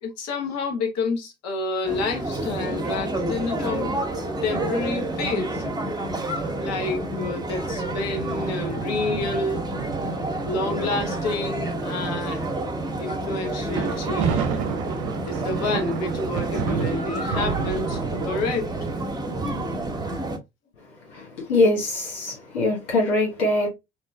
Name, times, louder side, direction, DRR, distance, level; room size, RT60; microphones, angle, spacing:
voice 1, 0.0-3.9 4.4-5.6 6.6-9.6 10.5-12.5 13.0-14.6 15.2-18.7, left 3 dB, 50° left, 1.0 m, -29 dB
sound 1, 1.8-20.4, right 1 dB, 10° right, 1.0 m, -29 dB
sound 2, 8.0-11.9 12.6-12.8 13.5-20.1, right 6 dB, 65° right, 0.5 m, -31 dB
voice 2, 21.1-23.7, left 2 dB, 80° left, 1.1 m, -23 dB
3.0 x 2.8 x 2.2 m
figure-of-eight pair, 50°, 33 cm